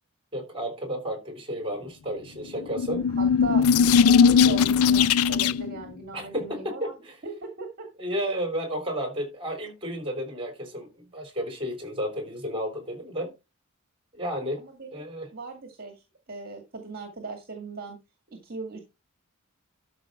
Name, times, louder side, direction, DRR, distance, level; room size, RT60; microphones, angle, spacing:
voice 1, 0.3-3.1 6.1-7.1 8.0-13.3 14.1-14.6 14.9-15.3, equal, 25° right, 3.8 m, -32 dB
sound 1, 2.6-5.8, left 6 dB, 70° left, 0.4 m, -19 dB
voice 2, 3.1-3.6 4.0-6.9 7.2-7.9 8.2-8.3 14.6-18.0 18.4-18.8, right 3 dB, 45° right, 2.1 m, -38 dB
12.5 x 5.4 x 4.4 m
head